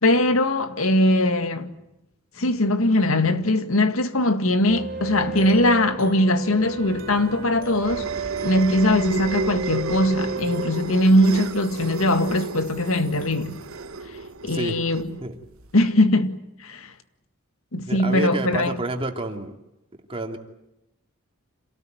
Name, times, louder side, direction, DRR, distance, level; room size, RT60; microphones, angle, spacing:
voice 1, 0.0-1.7 2.4-8.1 8.4-13.6 14.4-15.2 15.7-16.9 17.7-18.8, left 1 dB, 65° left, 1.9 m, -21 dB
sound 1, 4.7-13.6, right 4 dB, 40° right, 3.6 m, -35 dB
sound 2, 6.9-15.7, right 3 dB, 70° right, 1.5 m, -33 dB
voice 2, 14.4-14.8 15.2-15.4 17.9-19.5 20.1-20.4, right 1 dB, 25° right, 2.7 m, -29 dB
27.5 x 18.5 x 9.4 m
head